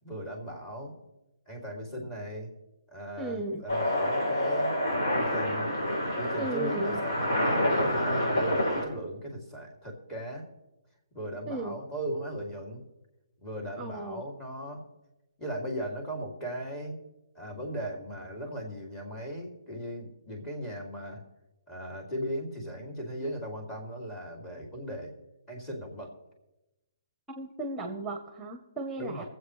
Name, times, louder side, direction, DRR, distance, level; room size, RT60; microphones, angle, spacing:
voice 1, 0.0-1.0 1.5-2.5 2.9-4.8 5.1-5.7 6.2-10.5 11.1-12.8 13.4-14.8 15.4-17.0 17.3-21.2 21.7-25.1 25.5-26.1 29.0-29.2, equal, 15° left, 0 dB, 2.7 m, -38 dB
voice 2, 3.2-3.6 6.4-7.0 11.5-11.8 13.8-14.2 27.3-29.2, right 2 dB, 10° right, 5 dB, 1.0 m, -35 dB
sound 1, 3.7-8.8, left 1 dB, 85° left, 3.7 m, -27 dB
23.0 x 7.9 x 3.3 m, 0.97 s
hypercardioid pair, 145°, 2 cm